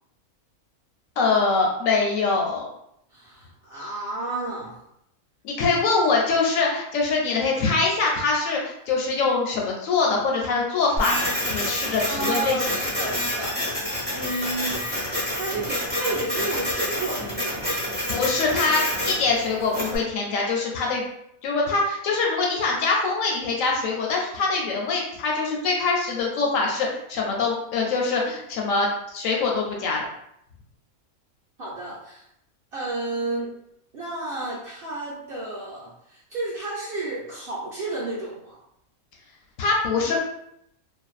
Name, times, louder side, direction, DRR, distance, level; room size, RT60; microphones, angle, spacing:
voice 1, 1.2-2.7 5.4-12.8 18.1-21.1 21.4-30.0 39.6-40.2, left 4 dB, 70° left, -1 dB, 0.9 m, -24 dB
voice 2, 3.1-4.8 12.1-14.8 15.3-18.1 31.6-32.2 32.7-33.5 33.9-38.6, right 2 dB, 60° right, -7 dB, 0.6 m, -32 dB
Printer, 11.0-20.0, equal, 10° right, 0.8 m, -28 dB
2.5 x 2.2 x 2.4 m, 0.77 s
omnidirectional pair, 1.5 m